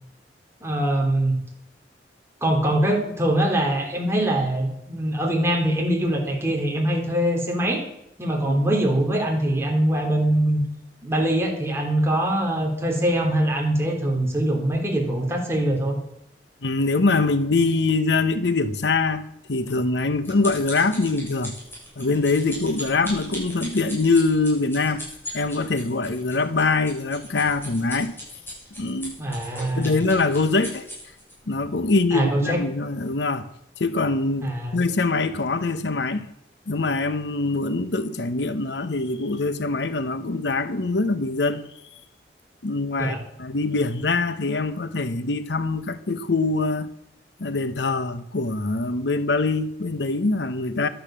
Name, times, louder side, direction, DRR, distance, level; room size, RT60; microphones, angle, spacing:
voice 1, 0.6-1.4 2.4-7.8 8.2-10.6 11.0-16.0 29.2-29.9 32.1-32.6 34.4-34.8 43.0-43.2, right 1 dB, 15° right, 3.3 m, -23 dB
voice 2, 16.6-21.6 22.0-25.0 25.3-28.1 28.8-29.1 29.7-30.9 31.5-33.5 33.8-36.3 36.7-41.6 42.6-46.9 47.4-50.9, left 3 dB, 75° left, 0.9 m, -23 dB
sound 1, 19.7-31.3 32.0-32.2 32.5-32.6, equal, 15° left, 6.8 m, -38 dB
12.0 x 10.0 x 7.5 m
head